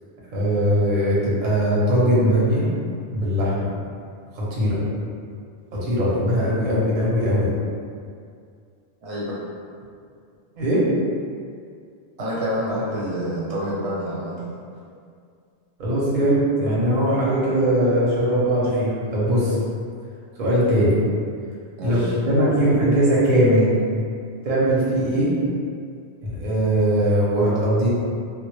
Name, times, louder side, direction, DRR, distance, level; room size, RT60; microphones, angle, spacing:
voice 1, 0.3-2.7 3.1-3.7 4.3-4.8 5.7-7.5 10.6-10.8 15.8-19.6 20.4-20.9 21.8-23.7 24.4-25.3 26.2-27.9, equal, 50° right, -7 dB, 0.7 m, -20 dB
voice 2, 9.0-9.4 12.2-14.6 21.8-22.1, equal, 80° right, -7 dB, 1.0 m, -27 dB
2.1 x 2.0 x 3.0 m, 2.3 s
omnidirectional pair, 1.1 m